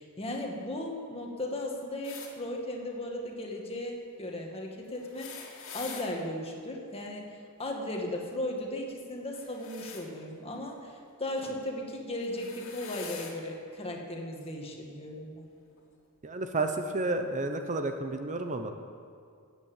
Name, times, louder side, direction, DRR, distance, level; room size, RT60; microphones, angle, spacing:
voice 1, 0.0-10.9 11.2-15.5, left 1 dB, 25° left, 1 dB, 1.8 m, -36 dB
sound 1, 2.0-2.3 4.9-6.1 9.3-10.1 11.4-11.6 12.2-13.4 14.4-14.5 15.7-15.8, left 6 dB, 65° left, 2.2 m, -44 dB
voice 2, 16.2-18.7, right 2 dB, 35° right, 6 dB, 0.8 m, -31 dB
14.0 x 8.4 x 8.8 m, 2.3 s
head